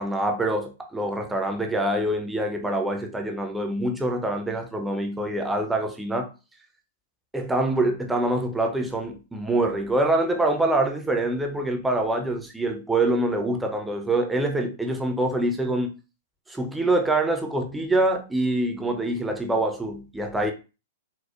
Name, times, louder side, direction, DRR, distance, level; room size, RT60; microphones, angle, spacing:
voice 1, 0.0-6.3 7.3-15.9 16.5-20.5, right 1 dB, 5° right, 0.5 m, -25 dB
4.3 x 2.0 x 2.3 m
figure-of-eight pair, 105°, 0 cm